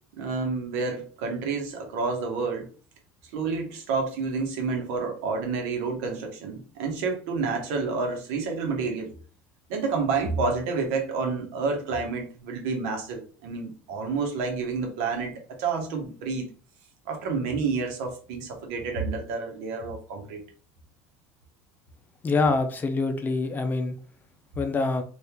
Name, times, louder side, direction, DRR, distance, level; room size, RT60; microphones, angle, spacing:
voice 1, 0.2-2.7 3.3-9.1 9.7-16.5 17.1-20.4, right 4 dB, 80° right, 1.0 m, -29 dB
voice 2, 22.2-24.0 24.6-25.0, left 3 dB, 25° left, 0.6 m, -25 dB
2.8 x 2.5 x 3.5 m
supercardioid pair, 105°, 7 cm